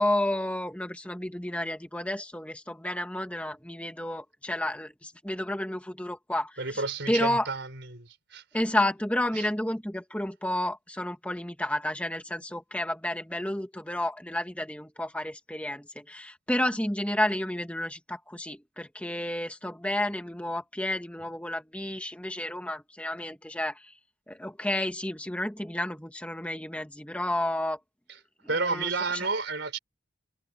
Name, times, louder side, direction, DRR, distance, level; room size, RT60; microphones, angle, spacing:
voice 1, 0.0-7.5 8.5-23.9 24.3-27.8 28.6-29.2, left 1 dB, 5° left, 1.9 m, -31 dB
voice 2, 6.6-8.4 9.3-9.5 28.5-29.8, right 3 dB, 60° right, 4.4 m, -31 dB
head